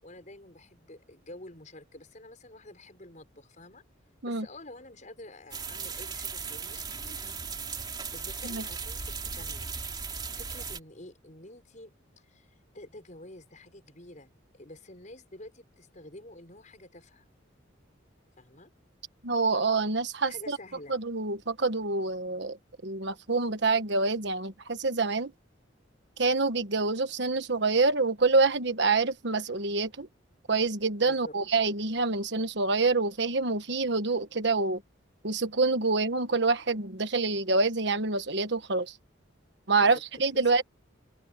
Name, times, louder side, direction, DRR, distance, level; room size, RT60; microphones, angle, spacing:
voice 1, 0.0-3.8 4.2-7.4 8.1-9.7 9.9-17.2 18.4-18.7 20.2-21.0 31.1-31.4 39.8-40.0 40.3-40.6, left 1 dB, 40° left, 6.5 m, -49 dB
sound 1, 5.5-10.8, right 5 dB, 20° right, 3.3 m, -37 dB
voice 2, 19.2-20.6 20.9-22.6 22.8-25.3 26.2-30.1 30.5-34.8 35.2-38.9 39.7-40.6, right 3 dB, 60° right, 1.4 m, -26 dB
open air
head